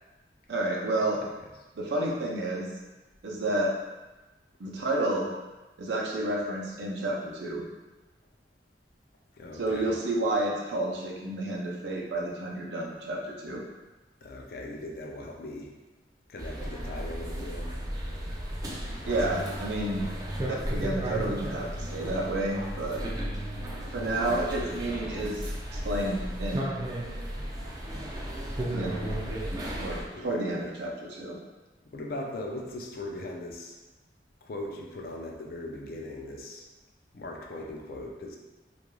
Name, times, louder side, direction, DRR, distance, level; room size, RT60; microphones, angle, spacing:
voice 1, 0.5-1.2 1.8-2.7 3.2-3.7 4.6-5.3 5.8-7.6 9.5-13.6 19.1-20.1 20.5-23.0 23.9-25.4 25.7-26.6 28.7-29.1 29.8-31.4, right 1 dB, 75° right, -2 dB, 0.5 m, -30 dB
voice 2, 9.3-9.9 14.2-15.7 16.3-17.8 19.0-19.6 19.9-20.3 30.1-30.4 31.9-33.8 34.4-36.6 37.1-38.4, left 1 dB, 55° left, 0 dB, 0.4 m, -39 dB
sound 1, 16.4-30.0, right 1 dB, 20° right, 0.3 m, -34 dB
2.4 x 2.2 x 3.0 m, 1.1 s
head